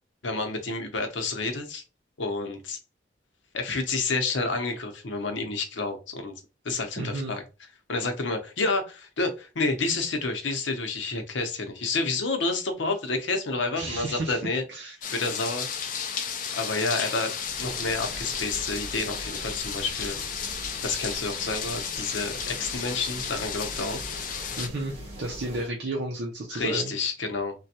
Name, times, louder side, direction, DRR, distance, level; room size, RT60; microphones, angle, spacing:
voice 1, 0.2-1.8 2.2-2.8 3.5-6.3 6.6-7.4 7.9-14.6 15.1-15.7 16.5-20.2 20.8-24.0 26.5-27.5, left 3 dB, 85° left, 0.7 m, -29 dB
voice 2, 7.0-7.3 13.8-14.4 14.7-14.9 24.6-26.9, right 2 dB, 60° right, 0.6 m, -32 dB
sound 1, 15.0-24.7, left 7 dB, 45° left, 0.4 m, -33 dB
sound 2, 17.4-25.7, equal, 35° right, 1.4 m, -42 dB
3.3 x 2.2 x 2.7 m
head